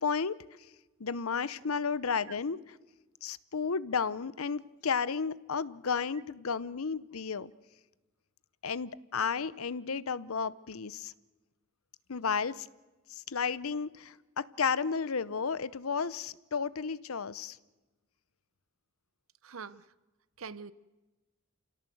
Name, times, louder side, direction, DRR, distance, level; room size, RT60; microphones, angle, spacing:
voice 1, 0.0-0.3 1.0-2.6 3.2-7.5 8.6-11.1 12.1-12.7 13.3-17.6, left 5 dB, 85° left, 18 dB, 0.8 m, -32 dB
voice 2, 19.4-19.9 20.4-20.7, right 5 dB, 75° right, 16 dB, 0.9 m, -43 dB
28.0 x 17.5 x 7.8 m, 1.2 s
head